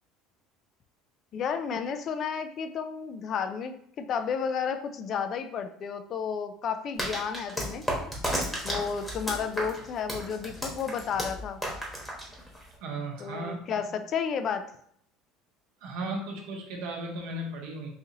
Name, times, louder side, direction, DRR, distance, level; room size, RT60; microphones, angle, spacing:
voice 1, 1.3-7.8 8.6-11.6 13.2-14.7, left 6 dB, 45° left, 9 dB, 0.3 m, -32 dB
sound 1, 7.0-12.7, equal, 5° left, 1.1 m, -33 dB
voice 2, 12.8-13.6 15.8-17.9, right 2 dB, 75° right, -1 dB, 0.7 m, -35 dB
4.0 x 2.6 x 2.8 m, 0.67 s
supercardioid pair, 115°, 0 cm